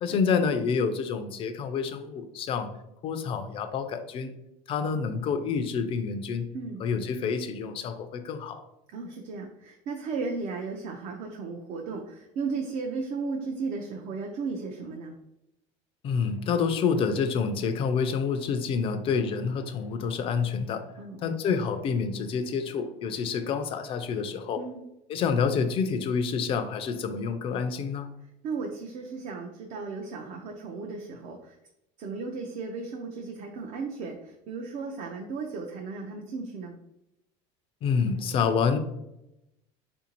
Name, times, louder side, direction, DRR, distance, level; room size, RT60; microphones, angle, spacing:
voice 1, 0.0-2.7 3.0-4.3 4.7-6.5 6.8-8.6 16.0-20.9 21.2-24.6 25.1-28.1 37.8-38.8, left 6 dB, 35° left, 9 dB, 0.3 m, -28 dB
voice 2, 8.9-15.1 21.0-21.3 24.6-24.8 28.4-31.6 32.0-36.8, right 4 dB, 50° right, 2 dB, 0.4 m, -35 dB
3.6 x 2.6 x 2.8 m, 0.87 s
cardioid pair, 140°, 16 cm